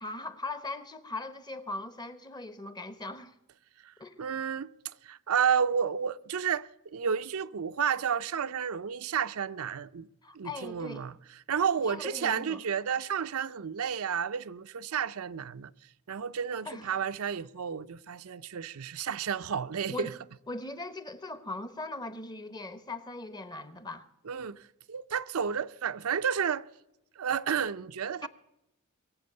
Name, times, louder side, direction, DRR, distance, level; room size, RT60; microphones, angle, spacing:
voice 1, 0.0-3.4 4.0-4.2 10.2-11.1 11.8-12.6 16.6-16.9 19.9-20.1 20.5-24.1 28.2-28.3, left 2 dB, 20° left, 0.8 m, -39 dB
voice 2, 3.8-4.7 5.0-10.1 10.3-11.1 11.5-15.7 16.1-20.1 24.3-26.7 27.2-28.3, right 7 dB, 75° right, 0.5 m, -31 dB
22.5 x 7.6 x 6.6 m
head